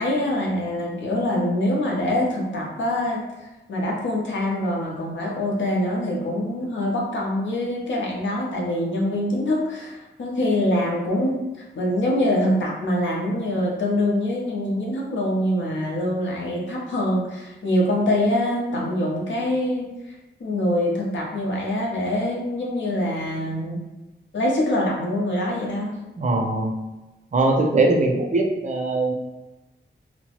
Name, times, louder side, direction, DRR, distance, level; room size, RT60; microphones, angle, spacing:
voice 1, 0.0-11.4 11.7-23.8 24.3-26.0, left 1 dB, 85° left, -3 dB, 0.7 m, -24 dB
voice 2, 26.2-26.7 27.3-29.1, right 2 dB, 40° right, 1 dB, 0.5 m, -21 dB
2.9 x 2.1 x 2.9 m, 1.0 s
wide cardioid pair, 135°, 19 cm